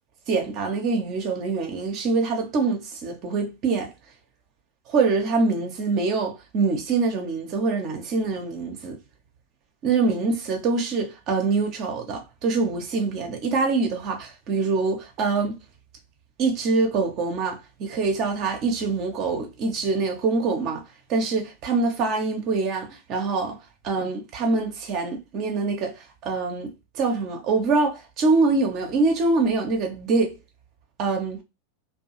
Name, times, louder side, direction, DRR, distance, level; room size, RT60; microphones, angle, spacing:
voice 1, 0.3-3.9 4.9-9.0 9.8-15.6 16.4-20.8 21.1-23.6 23.8-26.7 27.0-30.3 31.0-31.4, right 3 dB, 40° right, 0.7 m, -24 dB
2.6 x 2.3 x 2.8 m
figure-of-eight pair, 90°, 0 cm